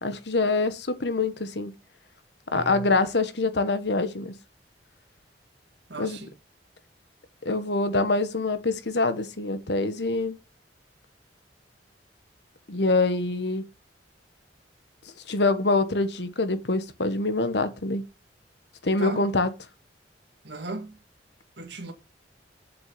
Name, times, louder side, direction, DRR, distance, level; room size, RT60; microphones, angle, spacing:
voice 1, 0.0-1.7 2.5-4.3 6.0-6.2 7.4-10.4 12.7-13.6 15.3-18.0 18.8-19.5, left 3 dB, 65° left, 1.3 m, -25 dB
voice 2, 2.5-2.9 5.9-6.3 19.0-19.3 20.4-21.0 21.6-21.9, right 2 dB, 70° right, 2.0 m, -36 dB
7.5 x 6.1 x 6.8 m
head